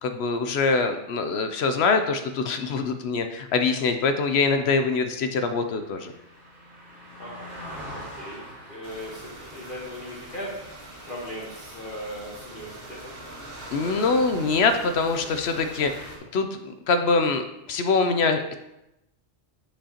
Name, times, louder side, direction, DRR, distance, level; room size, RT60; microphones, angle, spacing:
voice 1, 0.0-6.1 13.7-16.5 16.9-18.5, left 4 dB, 65° left, 7 dB, 0.8 m, -24 dB
Car passing by, 5.0-13.6 14.0-14.2, equal, 70° right, 2.6 m, -45 dB
voice 2, 7.2-7.5 7.9-8.4 8.7-10.5 11.1-13.2 13.8-14.1 15.5-15.7, equal, 45° left, -6 dB, 1.4 m, -38 dB
sound 1, 8.8-16.2, right 1 dB, 50° right, 1.4 m, -42 dB
8.9 x 5.1 x 2.9 m, 0.91 s
omnidirectional pair, 1.3 m